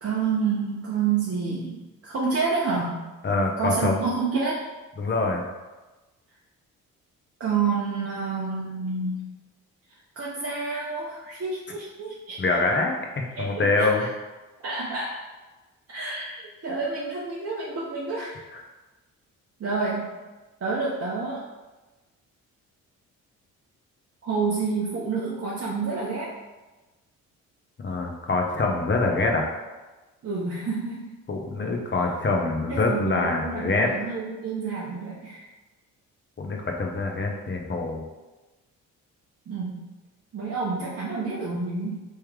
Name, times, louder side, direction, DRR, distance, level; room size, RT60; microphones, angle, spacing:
voice 1, 0.0-3.0 3.6-4.6 7.4-9.3 10.2-12.4 13.4-14.1 14.6-15.2 15.9-18.4 19.6-20.1 20.6-21.5 24.2-26.4 30.2-31.1 32.7-35.4 39.5-39.9 40.3-42.0, right 4 dB, 35° right, -5 dB, 0.8 m, -29 dB
voice 2, 3.2-4.0 5.0-5.4 12.4-12.9 13.4-14.1 18.5-18.6 27.8-29.5 31.3-33.9 36.4-38.0, left 3 dB, 30° left, 1 dB, 0.8 m, -24 dB
3.2 x 3.0 x 3.5 m, 1.2 s
hypercardioid pair, 45°, 40 cm